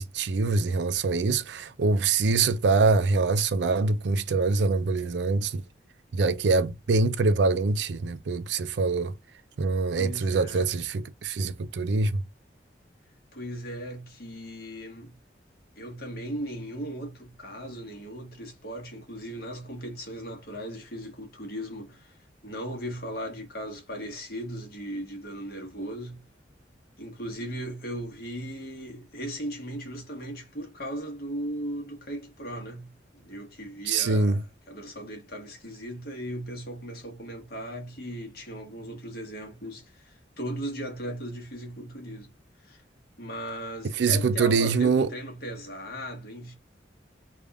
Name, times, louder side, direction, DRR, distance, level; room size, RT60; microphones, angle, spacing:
voice 1, 0.0-5.6 6.1-9.1 9.6-12.2 33.9-34.4 44.0-45.1, right 4 dB, 80° right, 0.4 m, -24 dB
voice 2, 9.9-10.7 13.3-15.1 15.8-26.2 27.0-42.3 42.6-42.8 43.2-46.5, equal, 55° left, 1.3 m, -37 dB
3.4 x 2.5 x 3.4 m
head